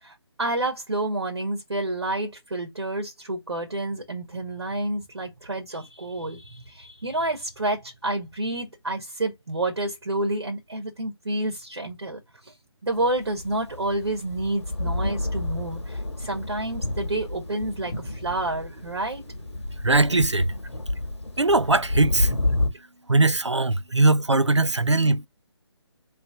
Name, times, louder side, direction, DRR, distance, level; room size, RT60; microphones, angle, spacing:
voice 1, 0.0-12.5 12.8-19.2, right 2 dB, 70° right, 1.8 m, -29 dB
Thunder, 13.2-22.7, left 2 dB, 75° left, 1.2 m, -30 dB
voice 2, 19.8-20.5 21.4-22.3 23.1-25.3, right 2 dB, 90° right, 0.5 m, -20 dB
3.4 x 3.0 x 3.7 m
figure-of-eight pair, 145°, 14 cm